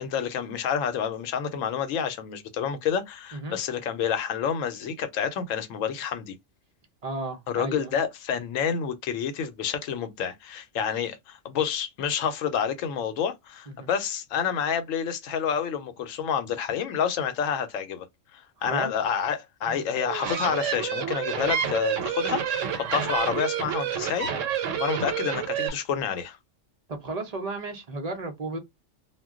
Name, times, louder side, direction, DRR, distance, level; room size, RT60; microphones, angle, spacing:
voice 1, 0.0-6.3 7.5-18.1 18.6-26.4, left 7 dB, 85° left, 1.0 m, -29 dB
voice 2, 7.0-7.9 13.7-13.9 18.6-18.9 19.7-19.8 26.9-28.6, right 2 dB, 45° right, 0.6 m, -34 dB
sound 1, 19.9-25.7, right 8 dB, 80° right, 1.0 m, -29 dB
2.2 x 2.2 x 3.6 m
omnidirectional pair, 1.3 m